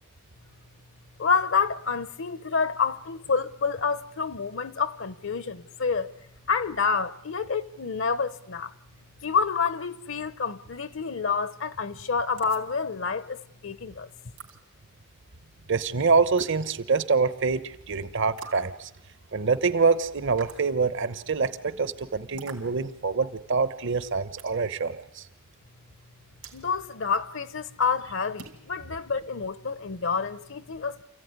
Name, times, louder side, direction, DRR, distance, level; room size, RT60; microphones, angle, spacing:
voice 1, 1.2-6.1 6.5-8.7 9.2-14.1 26.5-31.0, left 5 dB, 65° left, 0.9 m, -28 dB
sound 1, 12.4-12.7 14.4-14.6 16.4-16.6 18.4-18.7 20.4-20.7 22.4-22.6 24.4-24.6 26.4-26.6 28.4-28.6, right 4 dB, 80° right, 3.3 m, -41 dB
voice 2, 15.7-18.9 19.3-25.2, right 4 dB, 60° right, 1.0 m, -25 dB
28.5 x 15.0 x 9.6 m
head